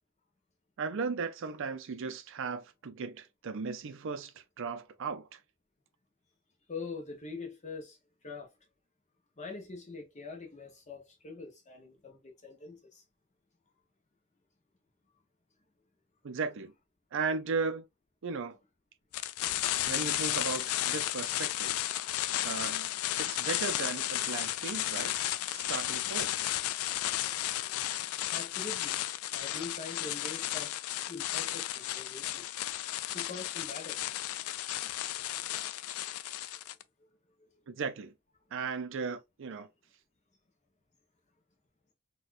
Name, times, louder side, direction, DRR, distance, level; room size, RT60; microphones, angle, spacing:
voice 1, 0.8-5.4 16.2-16.7 17.1-17.9 18.2-18.6 19.8-21.8 22.4-22.9 23.2-26.5 37.7-38.1 38.5-39.7, right 4 dB, 60° right, 0.5 m, -36 dB
voice 2, 6.7-8.0 8.2-8.5 9.4-13.0 27.6-28.0 28.3-28.9 29.3-30.7 31.1-32.4 33.1-34.0 37.4-37.5, left 4 dB, 35° left, 0.8 m, -44 dB
sound 1, 19.1-36.8, left 14 dB, 70° left, 0.3 m, -33 dB
4.1 x 2.3 x 2.5 m
head